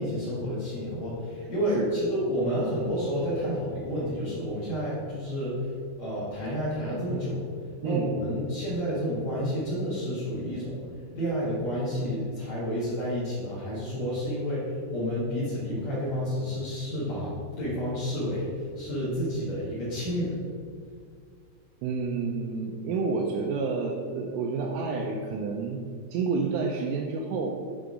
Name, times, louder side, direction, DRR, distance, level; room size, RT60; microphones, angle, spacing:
voice 1, 0.0-7.4 7.8-10.8 11.1-20.4, equal, 50° left, -10 dB, 2.6 m, -30 dB
voice 2, 21.8-25.8 26.1-27.6, right 4 dB, 85° right, 0 dB, 2.8 m, -29 dB
10.5 x 3.7 x 4.9 m, 2.1 s
omnidirectional pair, 4.8 m